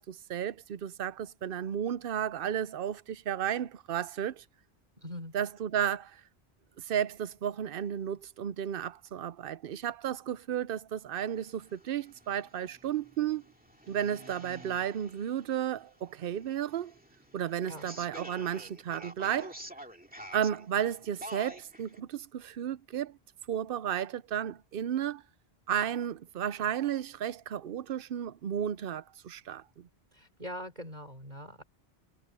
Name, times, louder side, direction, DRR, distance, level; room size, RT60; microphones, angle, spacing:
voice 1, 0.0-4.4 5.3-6.2 6.8-13.4 13.9-16.9 17.3-19.6 20.3-23.2 23.5-25.2 25.7-29.9, right 9 dB, 60° right, 0.8 m, -33 dB
voice 2, 5.0-5.3 17.7-17.9 30.1-31.6, equal, 45° right, 5.6 m, -42 dB
sound 1, 11.3-22.0, equal, 10° right, 2.4 m, -49 dB
omnidirectional pair, 1.1 m